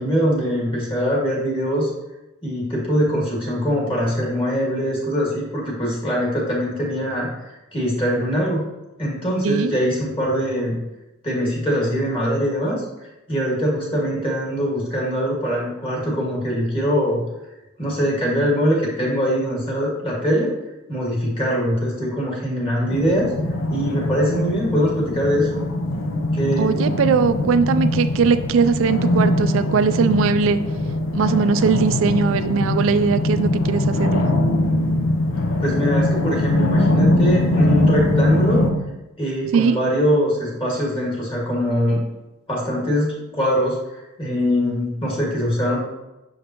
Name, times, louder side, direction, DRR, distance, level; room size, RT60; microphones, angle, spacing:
voice 1, 0.0-1.9 2.4-8.6 9.0-10.8 11.2-12.8 13.3-17.2 17.8-20.5 20.9-23.3 23.7-25.6 26.3-26.7 35.6-38.7 39.2-42.0 42.5-45.8, equal, 25° left, -4 dB, 1.8 m, -22 dB
sound 1, 22.9-38.7, left 1 dB, 80° left, 0.7 m, -21 dB
voice 2, 26.6-30.6 31.1-34.3 39.5-39.8, right 5 dB, 75° right, 11 dB, 0.3 m, -20 dB
6.4 x 5.0 x 2.9 m, 0.99 s
head